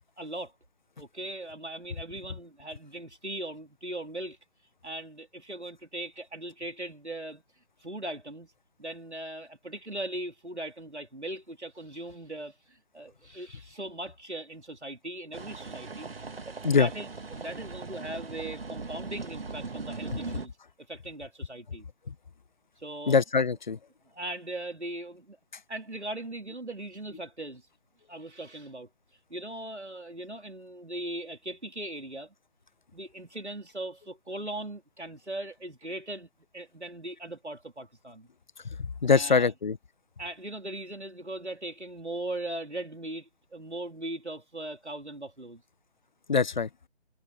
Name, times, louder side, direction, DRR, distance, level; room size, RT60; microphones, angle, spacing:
voice 1, 0.2-0.5 1.0-4.4 4.8-7.4 7.8-8.5 8.8-16.1 16.4-20.5 20.9-21.9 22.8-23.2 24.1-25.4 25.7-27.7 28.1-28.9 29.3-32.3 32.9-36.3 36.5-38.3 39.1-39.5 40.2-45.6, right 1 dB, 85° right, 3.8 m, -39 dB
sound 1, 15.3-20.5, right 4 dB, 60° right, 2.0 m, -39 dB
voice 2, 23.1-23.8 39.0-39.8 46.3-46.7, left 5 dB, 45° left, 1.1 m, -23 dB
figure-of-eight pair, 150°, 33 cm